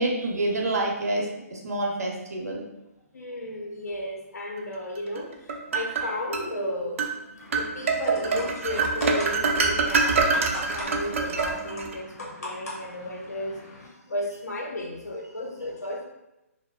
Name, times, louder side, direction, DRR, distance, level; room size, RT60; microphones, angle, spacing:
voice 1, 0.0-2.6, right 2 dB, 85° right, -1 dB, 0.7 m, -27 dB
voice 2, 3.1-7.1 7.5-16.1, left 1 dB, 85° left, 0 dB, 0.6 m, -34 dB
sound 1, 5.2-6.5 7.0-7.2 7.5-12.0, right 4 dB, 55° right, 0.3 m, -25 dB
sound 2, 7.4-13.9, left 2 dB, 65° left, 1.0 m, -41 dB
2.6 x 2.0 x 2.2 m, 0.94 s
hypercardioid pair, 150°, 9 cm